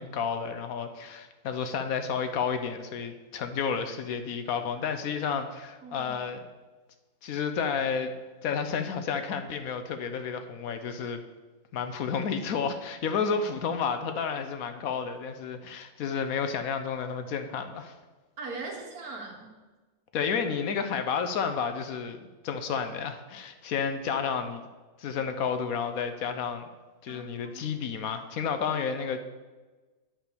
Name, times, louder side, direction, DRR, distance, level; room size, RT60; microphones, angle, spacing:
voice 1, 0.0-6.4 7.2-8.1 8.4-11.2 11.7-17.9 20.1-22.2 22.4-24.6 25.0-26.6 27.0-29.2, left 6 dB, 75° left, 8 dB, 1.2 m, -31 dB
voice 2, 5.8-6.1 18.4-19.5 25.1-25.2 27.1-27.6, right 3 dB, 85° right, 1 dB, 1.9 m, -40 dB
9.3 x 4.9 x 6.8 m, 1.2 s
omnidirectional pair, 1.5 m